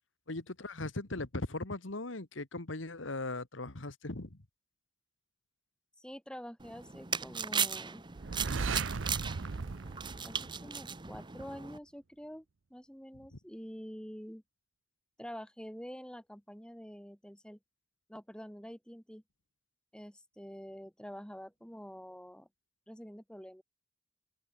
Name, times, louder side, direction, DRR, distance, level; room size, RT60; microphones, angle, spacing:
voice 1, 0.3-4.4, left 2 dB, 85° left, 2.0 m, -39 dB
voice 2, 6.0-8.0 8.4-8.9 10.2-14.4 15.2-17.6 18.1-19.2 19.9-22.5 22.9-23.6, equal, 5° left, 5.8 m, -47 dB
sound 1, 6.6-11.8, right 6 dB, 25° right, 1.0 m, -37 dB
sound 2, 8.1-11.0, right 4 dB, 75° right, 0.7 m, -37 dB
open air
head